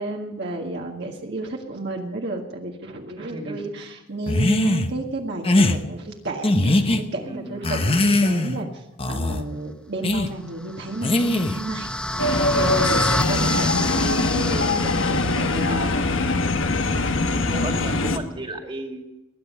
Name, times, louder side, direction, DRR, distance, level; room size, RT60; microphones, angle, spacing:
voice 1, 0.0-8.7 9.0-11.9 12.1-13.0 13.3-15.9, right 2 dB, 60° right, 1 dB, 1.7 m, -31 dB
voice 2, 3.2-3.7 7.2-7.7 10.8-10.9 15.7-16.4 17.5-19.0, right 1 dB, 25° right, 3 dB, 2.2 m, -35 dB
sound 1, 4.3-4.9 5.4-5.8 6.4-7.0 7.6-8.6 9.0-9.4 10.0-10.3 11.0-11.6, left 2 dB, 30° left, 1.0 m, -20 dB
sound 2, 10.6-15.7, left 1 dB, 5° left, 0.5 m, -28 dB
sound 3, 12.2-18.2, left 2 dB, 75° left, 1.2 m, -22 dB
21.0 x 10.0 x 5.5 m, 0.94 s
head